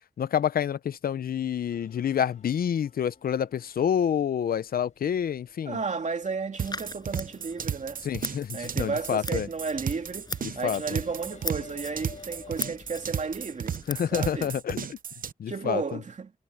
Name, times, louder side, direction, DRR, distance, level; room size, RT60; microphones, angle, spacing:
voice 1, 0.2-5.8 8.0-9.5 10.4-11.0 13.9-15.0 15.4-16.0, left 9 dB, 85° left, 0.6 m, -28 dB
sound 1, 1.7-12.8, left 5 dB, 55° left, 5.2 m, -54 dB
voice 2, 5.6-8.0 8.5-13.8 14.1-14.5 15.5-16.3, right 5 dB, 55° right, 2.5 m, -33 dB
Scissors, 6.6-14.6, left 3 dB, 30° left, 6.1 m, -41 dB
sound 2, 6.6-15.3, right 8 dB, 70° right, 0.7 m, -34 dB
wide cardioid pair, 110°, 15 cm